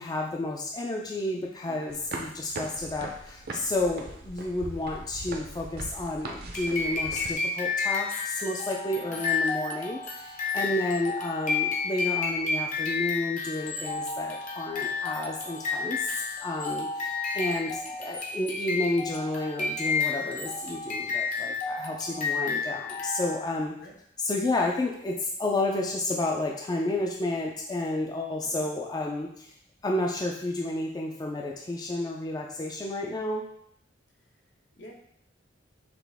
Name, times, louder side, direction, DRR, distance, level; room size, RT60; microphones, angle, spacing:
voice 1, 0.0-16.0 16.4-23.7 24.2-29.5 29.8-33.4, left 2 dB, 20° left, 0 dB, 0.4 m, -31 dB
voice 2, 1.6-1.9 9.1-9.3 10.5-10.8 23.8-24.0 28.4-28.6 34.2-34.4 34.8-34.9, left 1 dB, 70° left, -1 dB, 1.0 m, -49 dB
sound 1, 1.9-7.3, right 2 dB, 55° right, 0.5 m, -40 dB
sound 2, 6.5-23.6, left 4 dB, 45° left, 0.8 m, -31 dB
5.9 x 2.4 x 3.4 m, 0.69 s
head